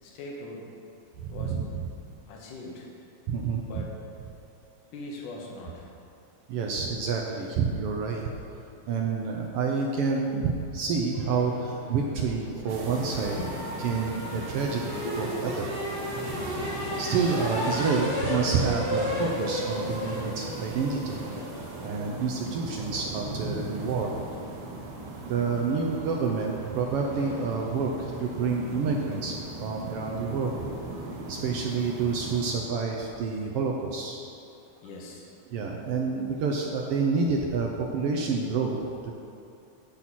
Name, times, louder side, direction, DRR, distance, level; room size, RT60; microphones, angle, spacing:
voice 1, 0.0-0.7 1.3-1.6 2.3-2.9 3.6-3.9 4.9-5.9 13.4-13.6 15.0-15.3 34.8-35.3, left 2 dB, 85° left, -2 dB, 2.7 m, -40 dB
voice 2, 1.2-1.6 3.3-3.6 6.5-8.2 8.5-13.4 13.8-15.7 17.0-21.2 21.8-24.1 25.2-30.6 31.3-34.2 35.5-38.8 39.0-39.1, right 5 dB, 80° right, 0 dB, 1.3 m, -28 dB
sound 1, 11.1-23.7, equal, 40° right, 0.7 m, -35 dB
sound 2, 12.7-32.6, right 2 dB, 60° right, 1.4 m, -39 dB
15.0 x 6.0 x 4.2 m, 2.6 s
omnidirectional pair, 3.5 m